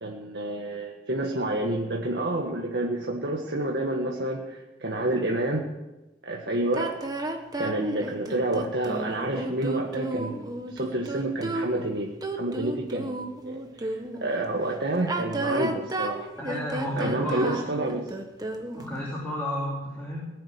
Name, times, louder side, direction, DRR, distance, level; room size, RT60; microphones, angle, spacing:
voice 1, 0.0-5.7 6.2-6.9 7.6-16.3 16.9-18.1, right 2 dB, 70° right, 0 dB, 1.5 m, -29 dB
sound 1, 6.7-14.3 15.0-19.0, right 2 dB, 20° right, 1.4 m, -32 dB
voice 2, 16.4-17.6 18.7-20.3, equal, 10° left, -6 dB, 3.6 m, -32 dB
18.5 x 7.6 x 9.6 m, 1.1 s
head